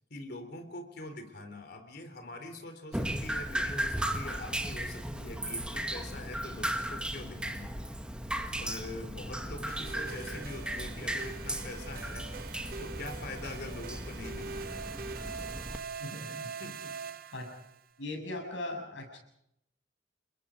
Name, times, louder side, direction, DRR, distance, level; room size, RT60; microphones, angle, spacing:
voice 1, 0.0-7.8 8.6-12.3 12.8-14.8 16.6-16.9, left 2 dB, 60° left, 7 dB, 3.7 m, -44 dB
Drip, 2.9-15.8, right 1 dB, 5° right, 1.6 m, -36 dB
sound 1, 9.7-17.8, right 5 dB, 55° right, 0.8 m, -43 dB
voice 2, 16.0-16.5 17.3-17.5 18.0-19.2, left 2 dB, 90° left, 3 dB, 7.4 m, -39 dB
29.5 x 22.0 x 5.1 m, 0.78 s
head